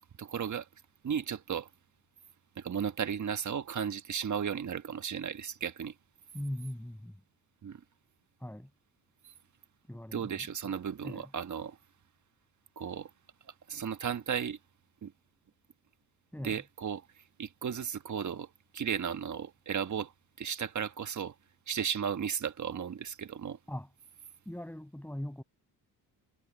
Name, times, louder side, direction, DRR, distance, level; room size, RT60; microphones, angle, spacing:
voice 1, 0.2-0.7 1.0-1.7 2.6-5.9 7.6-7.8 10.1-11.8 12.8-13.1 13.7-14.6 15.0-15.1 16.4-17.0 17.4-18.5 18.7-20.1 20.4-21.3 21.7-23.6, right 7 dB, 45° right, 1.5 m, -35 dB
voice 2, 6.3-7.1 8.4-8.7 9.9-10.4 11.0-11.3 16.3-16.6 23.7-23.9 24.5-25.4, left 1 dB, 5° left, 7.0 m, -40 dB
cardioid pair, 75°, 40 cm